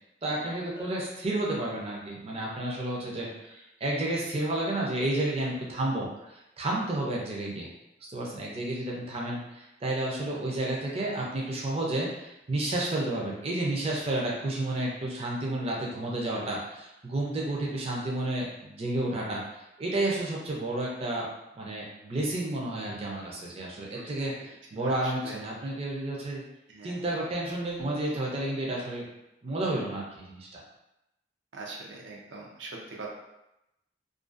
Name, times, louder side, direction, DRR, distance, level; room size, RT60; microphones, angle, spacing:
voice 1, 0.2-7.7 8.1-21.3 21.6-26.4 26.8-29.1 29.4-30.6, right 1 dB, 35° right, -3 dB, 0.4 m, -31 dB
Bell, 0.8-2.4, left 6 dB, 30° left, 0.4 m, -49 dB
voice 2, 24.8-25.4 26.7-27.0 31.5-33.1, right 3 dB, 85° right, -1 dB, 0.5 m, -42 dB
2.4 x 2.2 x 2.4 m, 0.89 s
head